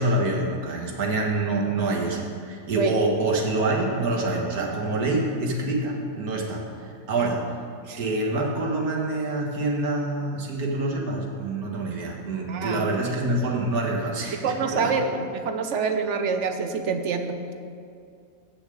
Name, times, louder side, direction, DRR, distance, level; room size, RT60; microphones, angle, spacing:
voice 1, 0.0-7.6 8.0-14.9, right 2 dB, 70° right, -1 dB, 1.9 m, -26 dB
voice 2, 12.5-13.2 14.4-17.5, right 5 dB, 55° right, 6 dB, 1.0 m, -27 dB
8.1 x 7.0 x 7.7 m, 2.4 s
omnidirectional pair, 1.6 m